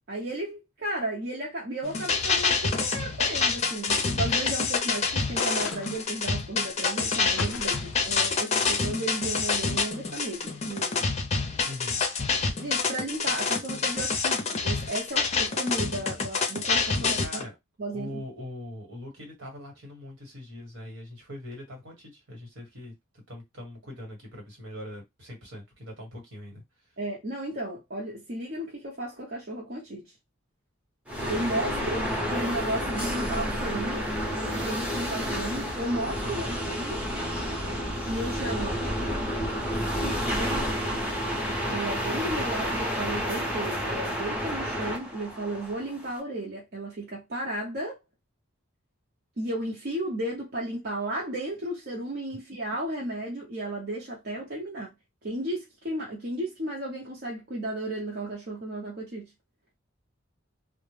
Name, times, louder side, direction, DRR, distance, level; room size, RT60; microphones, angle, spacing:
voice 1, 0.1-11.1 12.6-17.4 17.8-18.2 27.0-30.1 31.3-34.0 34.3-37.0 38.0-38.8 40.0-40.9 41.7-48.0 49.4-54.9 55.2-59.3, right 1 dB, 50° right, 0.8 m, -34 dB
sound 1, 1.8-17.4, left 4 dB, 35° left, 0.5 m, -27 dB
sound 2, 5.4-6.2 7.4-8.1, left 5 dB, 85° left, 0.5 m, -38 dB
voice 2, 11.7-12.0 16.9-17.5 17.9-26.6 36.2-36.5, left 1 dB, 70° right, 1.3 m, -42 dB
sound 3, 31.1-46.2, equal, 5° right, 0.7 m, -30 dB
2.1 x 2.1 x 3.2 m
head